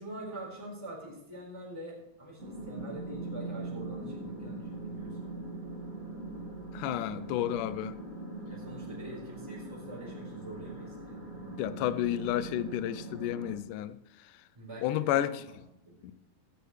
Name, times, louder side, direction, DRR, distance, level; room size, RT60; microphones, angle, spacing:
voice 1, 0.0-2.4 2.7-5.4 8.5-11.5 14.5-15.6 15.8-16.1, right 1 dB, 10° right, 4.4 m, -45 dB
sound 1, 2.4-13.6, right 2 dB, 35° right, 1.4 m, -41 dB
voice 2, 6.7-7.9 11.6-14.0 14.8-15.4 16.0-16.1, left 12 dB, 80° left, 2.0 m, -31 dB
16.0 x 14.5 x 3.3 m
omnidirectional pair, 4.1 m